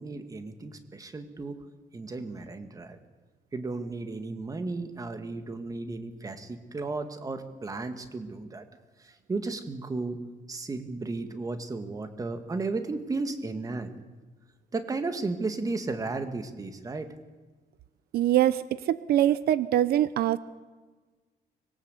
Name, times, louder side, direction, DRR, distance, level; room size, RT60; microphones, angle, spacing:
voice 1, 0.0-1.6 1.9-3.0 3.5-8.6 9.0-10.2 10.5-13.9 14.7-17.1, right 3 dB, 20° right, 8 dB, 2.0 m, -34 dB
voice 2, 18.1-20.4, right 12 dB, 75° right, 16 dB, 0.8 m, -23 dB
24.5 x 21.5 x 8.3 m, 1.3 s
cardioid pair, 160°, 16 cm